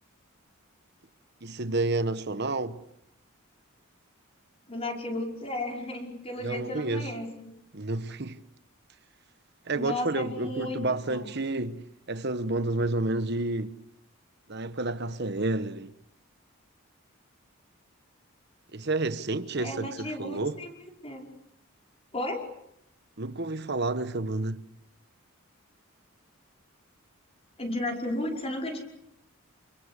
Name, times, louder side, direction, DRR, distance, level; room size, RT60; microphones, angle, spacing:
voice 1, 1.4-2.8 6.4-7.1 7.7-8.4 9.7-13.8 14.5-15.9 18.7-20.6 23.2-24.6, right 2 dB, 50° right, 1.2 m, -30 dB
voice 2, 4.7-7.5 9.7-11.3 19.6-20.7 21.0-21.3 22.1-22.4 27.6-28.8, left 1 dB, 25° left, 5.3 m, -34 dB
29.5 x 22.0 x 8.3 m
head